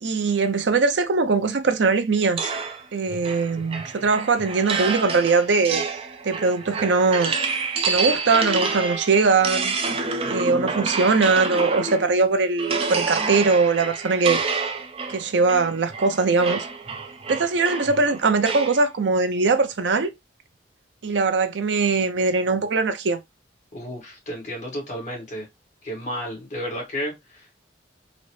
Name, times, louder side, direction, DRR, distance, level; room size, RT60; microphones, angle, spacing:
voice 1, 0.0-2.5 2.9-5.9 6.2-7.3 7.8-9.7 10.3-14.4 15.1-16.6 17.3-20.1 21.0-23.2, right 4 dB, 80° right, 0.6 m, -21 dB
sound 1, 2.4-12.2 12.6-18.8, right 4 dB, 30° right, 0.5 m, -28 dB
voice 2, 23.7-25.5 25.8-27.7, equal, 40° left, 1.7 m, -32 dB
3.9 x 2.1 x 3.1 m
head